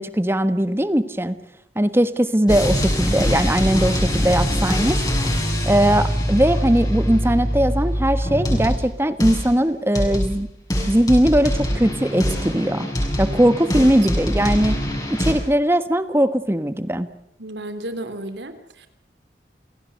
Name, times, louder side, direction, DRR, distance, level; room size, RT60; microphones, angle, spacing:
voice 1, 0.0-1.4 1.7-5.0 5.7-10.5 10.9-12.9 13.2-14.8 15.1-17.1, right 1 dB, 15° right, 12 dB, 1.3 m, -19 dB
sound 1, 2.5-8.9 9.2-9.5 9.9-10.4 10.7-15.3, equal, 20° left, 6.7 m, -23 dB
voice 2, 17.4-18.9, right 1 dB, 85° right, 9 dB, 3.1 m, -33 dB
28.5 x 18.0 x 6.8 m, 0.75 s
head